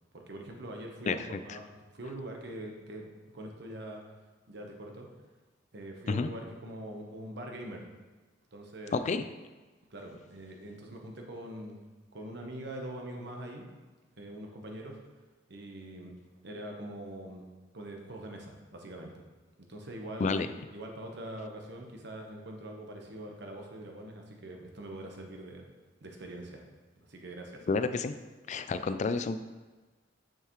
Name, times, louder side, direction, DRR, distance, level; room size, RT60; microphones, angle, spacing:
voice 1, 0.1-1.6 1.9-4.0 4.5-5.1 5.7-7.8 8.5-9.1 9.9-11.8 12.1-13.7 14.2-15.0 15.5-16.1 16.4-17.4 17.7-19.2 19.7-25.6 26.0-26.6 27.0-27.7, right 1 dB, 65° right, 1 dB, 1.1 m, -43 dB
voice 2, 1.1-1.6 6.1-6.3 8.9-9.2 20.2-20.5 27.7-28.2 28.5-29.4, left 4 dB, 40° left, 11 dB, 0.3 m, -30 dB
6.6 x 6.5 x 3.1 m, 1.3 s
head